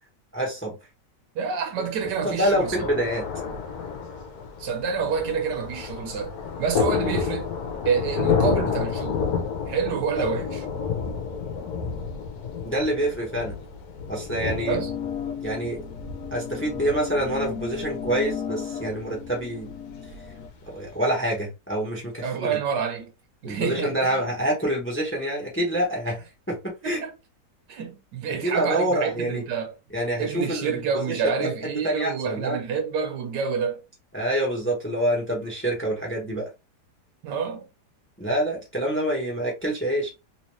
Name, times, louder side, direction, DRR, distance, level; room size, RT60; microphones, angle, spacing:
voice 1, 0.3-0.8 2.2-3.2 12.6-13.5 14.1-14.8 15.4-15.8 16.3-19.7 20.7-22.6 23.4-26.2 26.5-27.0 28.3-29.4 29.9-31.5 31.8-32.6 34.1-36.5 38.2-40.1, right 1 dB, 10° left, 0.8 m, -26 dB
voice 2, 1.3-2.9 4.6-7.5 7.8-9.3 9.7-10.6 14.7-14.9 22.2-23.1 23.4-24.2 26.8-27.1 27.7-29.7 30.2-33.8 37.2-37.7, right 6 dB, 75° right, 1.4 m, -28 dB
Thunder, 2.0-20.9, left 6 dB, 65° left, 1.1 m, -31 dB
sound 1, 14.6-20.5, left 8 dB, 80° left, 0.6 m, -35 dB
3.1 x 3.1 x 3.0 m
omnidirectional pair, 1.9 m